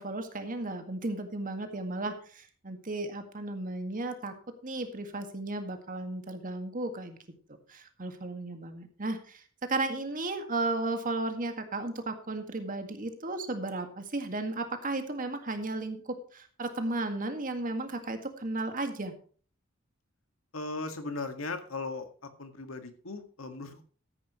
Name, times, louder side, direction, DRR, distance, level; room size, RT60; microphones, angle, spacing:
voice 1, 0.0-4.4 4.6-7.2 7.7-19.1, right 2 dB, 45° right, 7 dB, 1.9 m, -34 dB
voice 2, 20.5-22.1 22.4-23.8, left 3 dB, 85° left, 7 dB, 2.0 m, -37 dB
13.5 x 10.0 x 3.1 m, 0.42 s
head